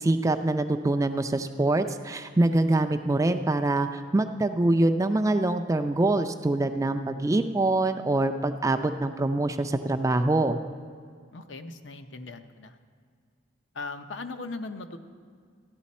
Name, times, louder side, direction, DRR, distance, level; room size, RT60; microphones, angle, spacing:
voice 1, 0.0-10.6, right 2 dB, 15° right, 8 dB, 0.4 m, -24 dB
voice 2, 11.3-12.8 13.7-15.0, left 3 dB, 65° left, 8 dB, 0.6 m, -38 dB
14.0 x 10.5 x 4.2 m, 2.1 s
head